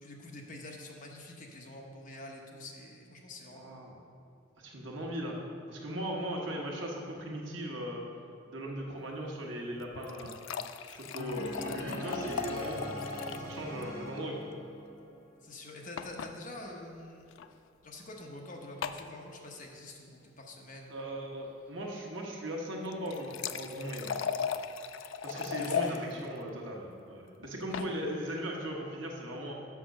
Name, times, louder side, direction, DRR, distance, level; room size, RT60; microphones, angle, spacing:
voice 1, 0.0-3.7 12.5-12.7 15.4-17.3 17.8-21.0 25.3-26.2 27.7-27.8, left 2 dB, 45° left, 0 dB, 0.9 m, -46 dB
voice 2, 3.5-4.0 4.6-5.4 5.7-8.0 8.5-10.4 10.8-13.0 13.4-14.4 20.9-24.1 25.2-29.5, equal, 75° right, -1 dB, 1.2 m, -38 dB
sound 1, 9.8-13.5 13.8-13.9 14.2-14.3 16.0-16.3 17.3-17.5 18.8-19.1 22.8-26.0 27.4-27.9, left 7 dB, 85° left, 0.3 m, -37 dB
sound 2, 11.2-15.2, equal, 15° left, 1.4 m, -41 dB
6.0 x 5.8 x 6.3 m, 2.6 s
head